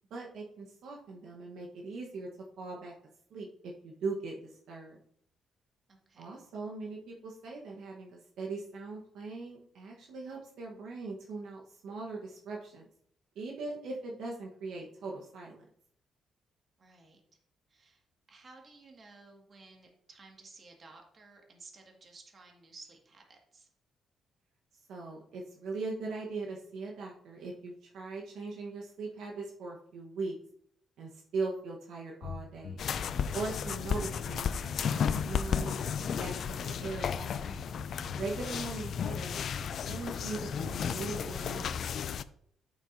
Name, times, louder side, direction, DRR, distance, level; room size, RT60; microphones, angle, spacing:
voice 1, 0.1-2.3 2.6-2.9 3.3-5.0 6.2-12.9 13.3-15.7 24.9-30.4 31.0-32.8 33.3-35.8 36.2-37.5 38.1-42.0, right 3 dB, 75° right, -1 dB, 1.2 m, -40 dB
voice 2, 5.9-6.3 16.8-17.2 17.7-23.7, right 3 dB, 40° right, 2 dB, 1.9 m, -55 dB
sound 1, 32.2-41.8, left 4 dB, 80° left, 2.2 m, -44 dB
sound 2, 32.8-42.2, left 7 dB, 60° left, 0.3 m, -34 dB
8.7 x 7.3 x 2.7 m, 0.66 s
cardioid pair, 90°, 0 cm